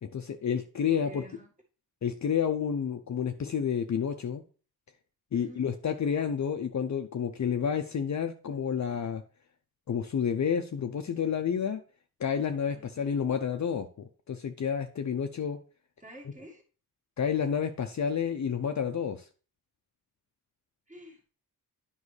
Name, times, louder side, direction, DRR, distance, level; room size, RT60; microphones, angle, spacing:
voice 1, 0.0-1.2 2.0-4.4 5.3-9.2 9.9-11.8 12.2-15.6 17.2-19.3, left 7 dB, 50° left, 6 dB, 0.6 m, -30 dB
voice 2, 0.9-1.5 5.3-5.7 12.7-13.0 16.0-16.6 20.9-21.3, equal, 20° right, -1 dB, 1.9 m, -49 dB
9.6 x 5.4 x 3.2 m, 0.37 s
wide cardioid pair, 105°, 37 cm